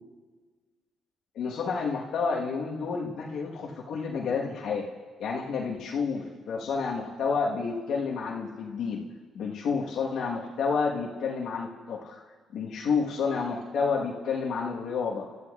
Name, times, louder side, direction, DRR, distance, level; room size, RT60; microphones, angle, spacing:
voice 1, 1.3-4.9 5.2-9.0 9.3-12.2 12.5-15.3, left 5 dB, 75° left, -2 dB, 1.4 m, -30 dB
28.0 x 13.0 x 2.5 m, 1.5 s
cardioid pair, 90°, 0 cm